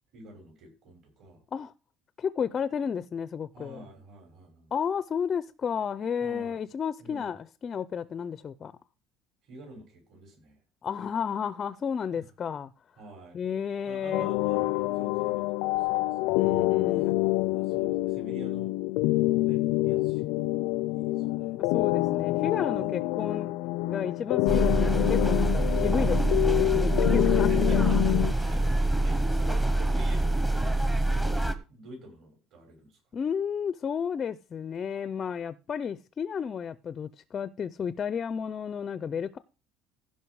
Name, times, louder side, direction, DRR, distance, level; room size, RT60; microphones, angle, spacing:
voice 1, 0.1-1.4 3.5-4.7 6.2-6.6 7.0-7.3 9.4-10.6 12.1-12.3 13.0-13.4 13.8-16.6 16.9-17.1 17.4-18.9 19.4-20.6 20.9-21.5 22.7-23.1 27.1-31.3 31.7-33.0, right 2 dB, 50° right, 6.6 m, -48 dB
voice 2, 2.2-3.8 4.7-8.7 10.8-12.7 13.3-14.3 16.3-17.2 21.7-23.6 23.9-27.8 33.1-39.4, left 7 dB, 30° left, 0.4 m, -32 dB
sound 1, 14.1-28.3, left 19 dB, 85° left, 0.5 m, -27 dB
sound 2, 24.5-31.5, right 1 dB, 5° right, 0.9 m, -25 dB
15.5 x 5.7 x 4.7 m
cardioid pair, 155°, 0 cm